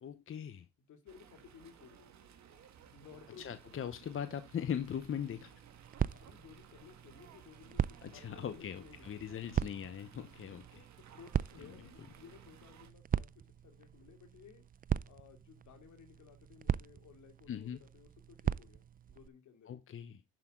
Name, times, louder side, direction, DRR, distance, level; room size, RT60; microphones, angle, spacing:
voice 1, 0.0-0.6 3.4-5.6 8.0-10.6 11.6-11.8 17.5-17.8 19.7-20.2, left 8 dB, 45° left, 0.9 m, -40 dB
voice 2, 0.8-2.1 2.9-3.8 6.1-9.0 10.5-13.3 13.6-14.6 15.1-19.8, left 7 dB, 75° left, 2.6 m, -58 dB
Fowl, 1.1-12.9, right 8 dB, 65° right, 1.6 m, -58 dB
sound 1, 4.8-19.3, right 8 dB, 30° right, 0.4 m, -40 dB
10.5 x 6.0 x 3.6 m
cardioid pair, 90°, 30 cm